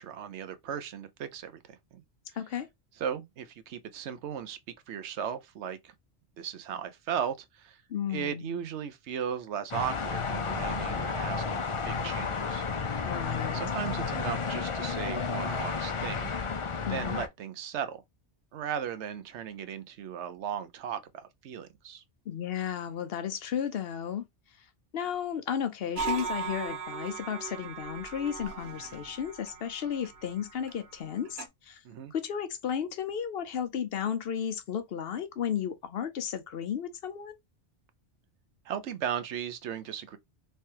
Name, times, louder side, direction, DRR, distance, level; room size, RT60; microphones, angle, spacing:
voice 1, 0.0-2.0 3.0-4.6 4.9-5.9 6.4-7.8 8.1-12.7 13.5-16.5 16.9-18.0 18.5-22.0 31.8-32.1 38.7-40.2, right 8 dB, 85° right, 0.9 m, -36 dB
voice 2, 2.3-2.7 7.9-8.5 13.0-13.6 16.9-17.2 22.3-24.3 24.9-31.8 32.1-37.4, left 8 dB, 65° left, 0.8 m, -33 dB
sound 1, 9.7-17.3, left 5 dB, 40° left, 0.4 m, -32 dB
sound 2, 25.9-31.5, right 5 dB, 70° right, 1.2 m, -38 dB
3.3 x 3.3 x 2.8 m
omnidirectional pair, 1.1 m